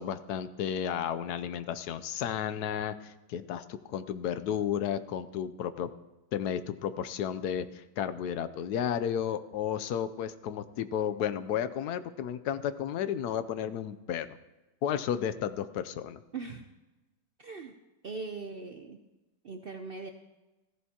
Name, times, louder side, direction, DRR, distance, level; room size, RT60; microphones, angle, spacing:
voice 1, 0.0-5.9 6.3-14.4 14.8-16.2, left 9 dB, 75° left, 13 dB, 1.1 m, -33 dB
voice 2, 16.3-16.7 17.4-17.7 18.0-19.0 19.4-20.1, right 4 dB, 55° right, 5 dB, 0.6 m, -40 dB
15.0 x 14.5 x 2.9 m, 1.1 s
omnidirectional pair, 1.7 m